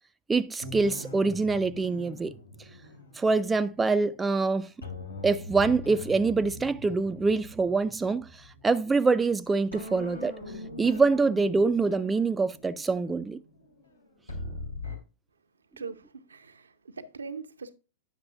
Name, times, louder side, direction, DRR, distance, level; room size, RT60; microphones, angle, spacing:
voice 1, 0.3-2.3 3.2-4.7 5.2-8.3 8.6-10.3 10.8-13.4, right 4 dB, 10° right, 0.3 m, -25 dB
sound 1, 0.6-4.3 4.8-9.3 9.7-15.0, left 2 dB, 85° left, 2.1 m, -42 dB
voice 2, 15.8-17.7, right 5 dB, 70° right, 0.7 m, -41 dB
9.5 x 6.5 x 2.5 m
figure-of-eight pair, 100°, 0 cm